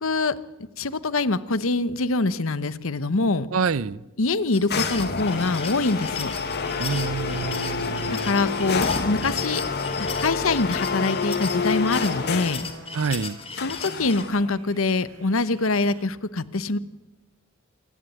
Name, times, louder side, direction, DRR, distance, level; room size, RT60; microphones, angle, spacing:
voice 1, 0.0-0.3 0.8-3.5 4.2-6.4 8.1-9.6 10.0-12.7 13.6-16.8, left 3 dB, 70° left, 1.0 m, -24 dB
voice 2, 3.5-4.1 6.8-8.4 12.9-13.4, right 5 dB, 70° right, 0.6 m, -27 dB
sound 1, 4.5-14.2, left 6 dB, 30° left, 3.0 m, -36 dB
sound 2, 4.7-12.7 13.6-14.5, left 4 dB, 50° left, 1.6 m, -28 dB
sound 3, 5.2-16.1, right 2 dB, 85° right, 2.7 m, -48 dB
28.0 x 11.0 x 9.4 m
head